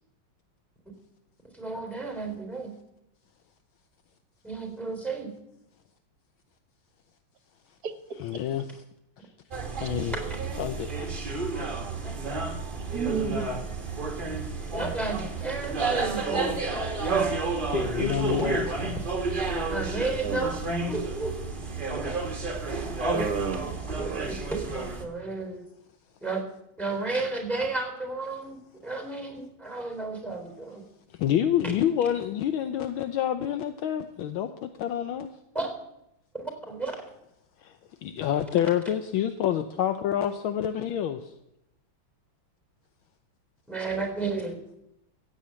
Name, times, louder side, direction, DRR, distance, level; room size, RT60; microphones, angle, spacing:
voice 1, 1.5-2.7 4.4-5.3 14.7-16.7 19.6-20.6 20.9-21.3 24.2-24.4 24.7-25.7 26.2-26.4 26.8-30.8 35.5-35.7 36.3-36.9 43.7-44.6, right 3 dB, ahead, 3 dB, 3.7 m, -32 dB
voice 2, 8.2-8.8 9.8-10.1 10.6-11.1 17.3-19.0 31.2-35.3 37.6-37.7 38.0-41.3, left 10 dB, 75° left, 9 dB, 1.5 m, -28 dB
sound 1, 9.5-25.0, right 3 dB, 25° right, 1.7 m, -31 dB
voice 3, 12.9-13.6 20.2-20.5 23.1-24.3, right 6 dB, 45° right, 8 dB, 1.8 m, -31 dB
15.5 x 8.4 x 8.7 m, 0.82 s
omnidirectional pair, 2.3 m